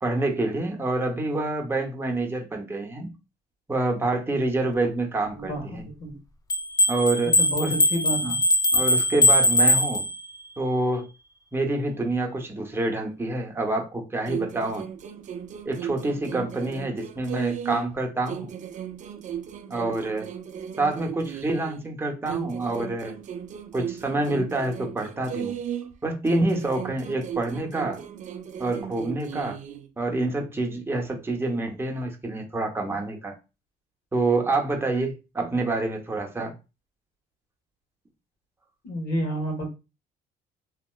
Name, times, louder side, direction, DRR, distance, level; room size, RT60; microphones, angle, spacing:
voice 1, 0.0-3.1 3.7-5.8 6.9-7.8 8.2-8.4 8.7-10.0 10.6-11.1 11.5-14.9 15.6-18.5 19.7-20.3 20.8-23.1 23.7-25.6 26.0-28.0 28.6-29.6 30.0-33.4 34.1-36.5, right 2 dB, 15° right, 0.8 m, -27 dB
voice 2, 5.4-6.2 7.4-8.4 38.8-39.7, right 1 dB, 80° left, 1.4 m, -30 dB
sound 1, 6.5-10.5, left 1 dB, 20° left, 0.3 m, -21 dB
sound 2, 14.3-18.0 18.3-21.9 22.3-26.0 26.3-29.9, right 9 dB, 45° right, 0.5 m, -36 dB
2.9 x 2.8 x 2.2 m
cardioid pair, 110°, 17 cm